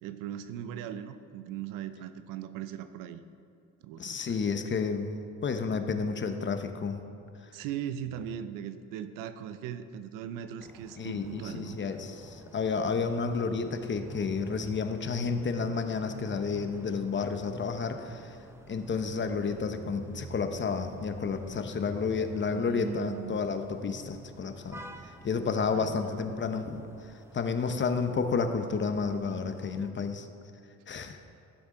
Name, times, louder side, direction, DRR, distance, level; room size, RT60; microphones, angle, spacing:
voice 1, 0.0-3.2 3.8-4.5 7.5-11.8 22.5-23.4 25.7-26.3, right 9 dB, 85° right, 11 dB, 0.6 m, -39 dB
voice 2, 4.0-7.0 11.0-18.4 18.7-24.8 25.2-30.3 30.9-31.2, left 5 dB, 35° left, 8 dB, 0.9 m, -31 dB
sound 1, 10.6-29.9, right 2 dB, 10° right, 0.6 m, -48 dB
15.5 x 7.2 x 3.8 m, 2.5 s
supercardioid pair, 80°, 32 cm